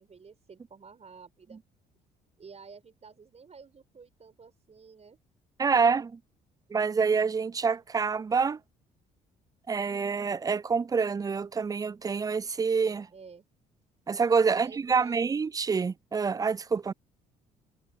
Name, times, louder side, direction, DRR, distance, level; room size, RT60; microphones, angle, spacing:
voice 1, 0.0-1.6 2.4-5.2 13.1-13.4 14.4-15.2, right 5 dB, 35° right, 4.9 m, -51 dB
voice 2, 5.6-6.2 6.7-8.6 9.7-13.1 14.1-16.9, right 5 dB, 20° right, 0.4 m, -27 dB
figure-of-eight pair, 50°, 20 cm